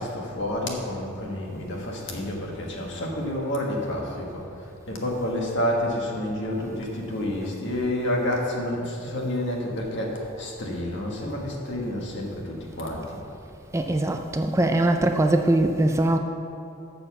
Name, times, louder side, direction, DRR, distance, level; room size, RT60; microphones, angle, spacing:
voice 1, 0.0-4.4 4.9-13.2, left 1 dB, 60° left, -1 dB, 1.5 m, -29 dB
voice 2, 13.7-16.2, right 1 dB, 15° right, 5 dB, 0.3 m, -21 dB
7.0 x 6.6 x 6.9 m, 2.7 s
head